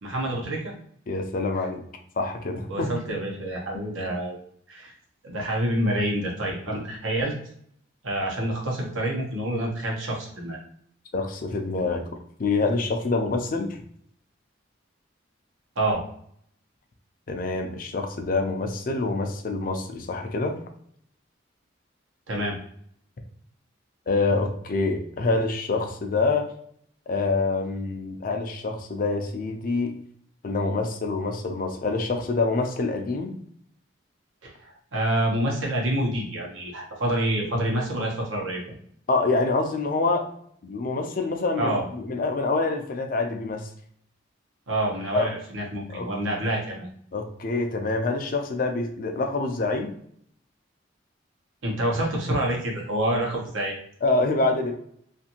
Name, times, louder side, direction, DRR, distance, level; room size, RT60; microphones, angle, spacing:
voice 1, 0.0-0.7 2.7-4.4 4.7-4.9 5.2-7.3 8.0-10.6 15.8-16.0 22.3-22.6 34.4-38.6 41.6-41.8 44.7-46.9 51.6-53.8, right 1 dB, 85° right, -1 dB, 0.9 m, -27 dB
voice 2, 1.1-1.8 2.2-2.9 11.1-12.0 12.4-13.8 17.3-20.6 24.1-26.5 27.1-29.9 30.4-33.4 39.1-40.3 40.6-43.7 45.1-45.3 45.9-46.1 47.1-49.9 54.0-54.7, left 3 dB, 45° left, 5 dB, 0.4 m, -26 dB
2.6 x 2.5 x 2.8 m, 0.65 s
head